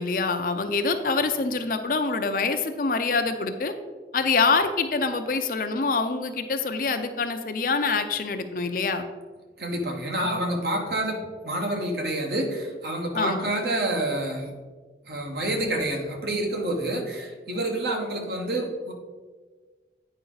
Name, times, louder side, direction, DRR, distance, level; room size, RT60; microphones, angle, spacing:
voice 1, 0.0-3.7 4.1-9.0 13.1-13.5, left 4 dB, 50° left, 8 dB, 0.5 m, -25 dB
voice 2, 9.6-14.5 15.1-18.9, right 1 dB, 60° right, 2 dB, 1.3 m, -28 dB
8.9 x 5.1 x 3.9 m, 1.4 s
head